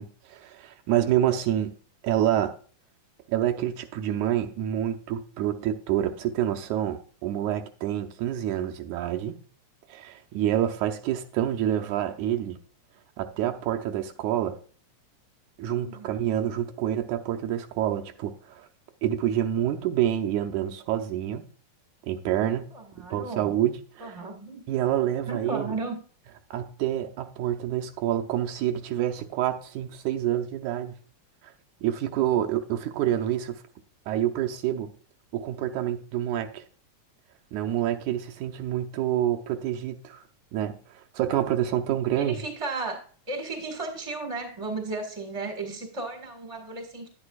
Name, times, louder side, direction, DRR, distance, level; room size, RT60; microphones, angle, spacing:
voice 1, 0.0-1.7 2.0-2.5 3.3-9.4 9.9-12.6 13.2-14.6 15.6-18.7 19.0-21.5 22.1-22.7 23.1-24.1 24.7-25.7 26.5-31.0 31.8-33.6 34.1-34.9 35.3-36.6 37.5-40.2 40.5-40.8 41.1-42.4, right 11 dB, 80° right, 2.2 m, -27 dB
voice 2, 15.8-16.2 22.7-23.5 24.0-24.6 25.3-26.0 42.1-47.1, right 3 dB, 15° right, 1.1 m, -34 dB
10.5 x 8.6 x 2.4 m
omnidirectional pair, 3.4 m